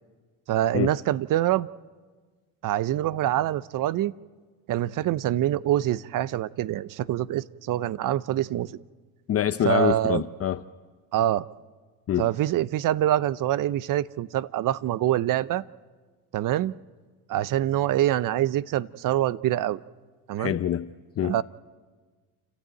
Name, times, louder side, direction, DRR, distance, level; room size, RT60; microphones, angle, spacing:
voice 1, 0.5-1.7 2.6-4.1 4.7-8.8 9.6-10.2 11.1-11.5 12.2-15.6 16.3-16.7 17.3-19.8 20.3-20.6 21.2-21.4, right 13 dB, 50° right, 0.7 m, -25 dB
voice 2, 9.3-10.6 12.1-12.3 20.4-21.4, left 10 dB, 35° left, 0.6 m, -26 dB
29.0 x 13.0 x 9.1 m
supercardioid pair, 90°, 41 cm